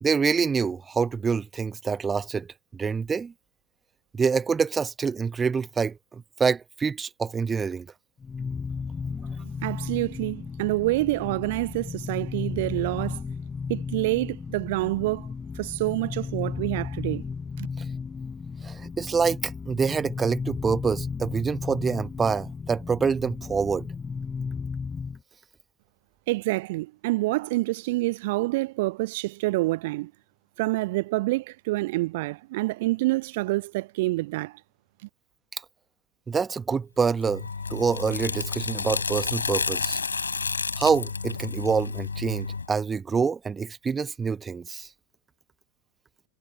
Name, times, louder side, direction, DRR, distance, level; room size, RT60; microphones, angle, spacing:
voice 1, 0.0-3.3 4.1-7.9 18.6-23.9 36.3-40.0 40.8-44.9, right 5 dB, 15° right, 1.1 m, -26 dB
sound 1, 8.2-25.2, left 5 dB, 15° left, 5.0 m, -34 dB
voice 2, 9.6-13.2 13.7-15.3 15.5-17.2 17.6-17.7 26.3-30.1 30.6-34.6, right 20 dB, 50° right, 0.8 m, -27 dB
sound 2, 37.2-42.7, left 4 dB, 75° left, 5.5 m, -30 dB
figure-of-eight pair, 90°, 0 cm